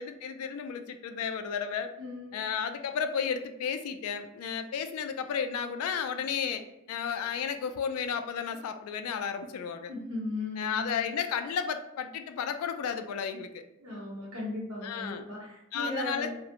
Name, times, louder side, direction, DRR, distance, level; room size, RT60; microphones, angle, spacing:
voice 1, 0.0-1.9 2.3-6.6 6.9-9.9 10.6-13.6 14.8-15.3 15.7-16.3, left 7 dB, 75° left, 12 dB, 0.3 m, -33 dB
voice 2, 2.0-2.4 9.9-10.9 13.8-16.3, left 2 dB, 70° right, -4 dB, 1.1 m, -37 dB
2.4 x 2.0 x 2.8 m, 0.88 s
head